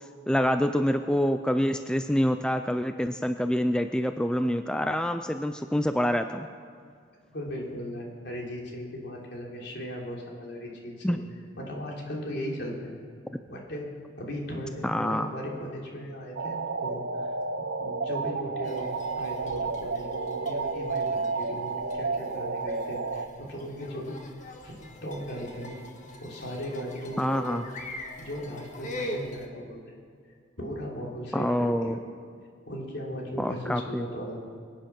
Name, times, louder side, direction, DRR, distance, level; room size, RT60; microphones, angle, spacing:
voice 1, 0.3-6.5 11.0-11.2 14.8-15.3 27.2-27.6 31.3-32.0 33.4-34.1, equal, 5° left, 8 dB, 0.4 m, -26 dB
voice 2, 7.3-11.2 11.6-12.9 13.5-13.9 14.2-17.3 17.8-25.8 26.2-27.6 28.2-29.9 30.6-32.0 32.6-34.4, equal, 60° left, -2 dB, 3.3 m, -37 dB
sound 1, 16.4-23.3, right 4 dB, 70° right, 0.7 m, -31 dB
sound 2, 18.6-29.5, left 1 dB, 40° left, 1.6 m, -43 dB
23.5 x 9.0 x 5.9 m, 2.1 s
head